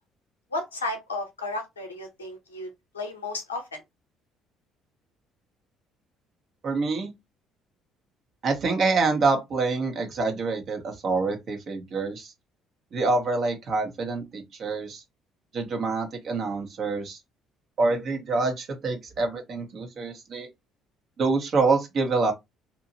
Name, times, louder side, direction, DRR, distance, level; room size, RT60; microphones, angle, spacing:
voice 1, 0.5-3.8, left 2 dB, 85° left, 0.7 m, -33 dB
voice 2, 6.6-7.1 8.4-12.3 12.9-15.0 15.5-17.2 17.8-20.5 21.2-22.3, right 3 dB, 50° right, 1.0 m, -26 dB
2.8 x 2.5 x 2.8 m
figure-of-eight pair, 50°, 0 cm